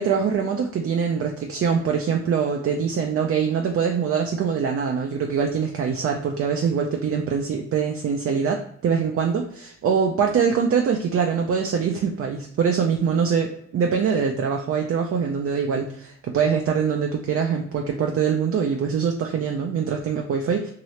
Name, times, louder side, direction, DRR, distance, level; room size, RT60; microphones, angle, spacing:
voice 1, 0.0-20.7, right 6 dB, 45° right, 2 dB, 0.4 m, -23 dB
2.8 x 2.7 x 3.1 m, 0.71 s
cardioid pair, 90°, 32 cm